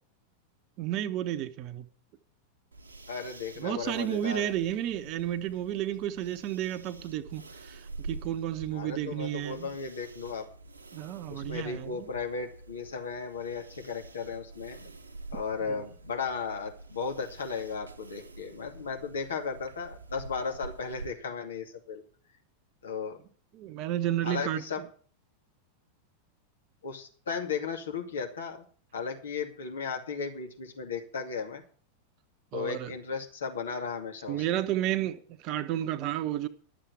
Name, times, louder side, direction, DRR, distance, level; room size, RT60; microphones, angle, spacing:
voice 1, 0.8-1.9 3.6-9.7 10.9-12.1 15.7-15.8 23.5-24.9 32.5-32.9 34.3-36.5, right 12 dB, 40° right, 1.0 m, -32 dB
sound 1, 2.7-21.1, right 3 dB, 75° right, 1.1 m, -47 dB
voice 2, 3.1-4.5 8.7-10.5 11.3-14.9 15.3-22.0 22.8-23.2 24.2-24.8 26.8-28.6 28.9-31.6 32.5-34.6, left 5 dB, 65° left, 2.4 m, -35 dB
12.0 x 7.5 x 8.1 m
figure-of-eight pair, 90°, 0 cm